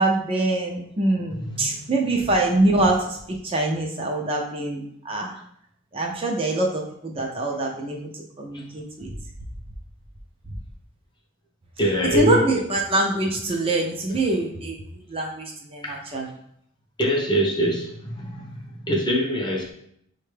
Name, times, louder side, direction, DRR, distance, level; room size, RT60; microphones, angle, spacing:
voice 1, 0.0-5.4 5.9-9.1 12.1-16.3, right 2 dB, 25° right, 0 dB, 0.5 m, -24 dB
voice 2, 1.3-1.9 11.8-12.4 15.8-15.9 17.0-19.7, equal, 20° left, 0 dB, 0.6 m, -24 dB
5.7 x 2.2 x 3.2 m, 0.71 s
head